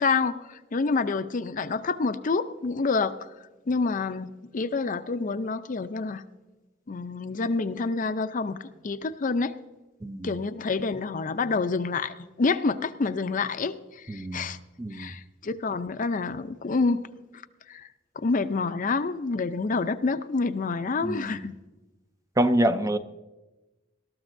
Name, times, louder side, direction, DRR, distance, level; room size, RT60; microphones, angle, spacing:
voice 1, 0.0-3.3 3.7-6.2 6.9-9.5 10.2-14.6 14.9-17.0 17.7-17.9 18.2-21.5, left 4 dB, 45° left, 0.5 m, -28 dB
voice 2, 10.0-10.3 14.1-14.5 14.8-15.1 21.0-21.3 22.4-23.0, right 1 dB, 15° right, 0.5 m, -26 dB
20.5 x 13.0 x 2.6 m
head